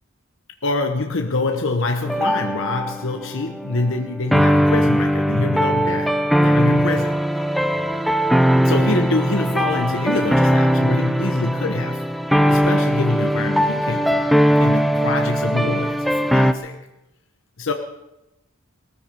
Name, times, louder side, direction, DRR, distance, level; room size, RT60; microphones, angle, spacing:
voice 1, 0.6-7.2 8.6-12.1 12.5-14.3 14.6-16.8 17.6-17.7, left 2 dB, 65° left, 5 dB, 1.1 m, -25 dB
sound 1, 2.1-16.5, equal, ahead, 0.6 m, -19 dB
18.5 x 14.0 x 5.3 m, 0.92 s
head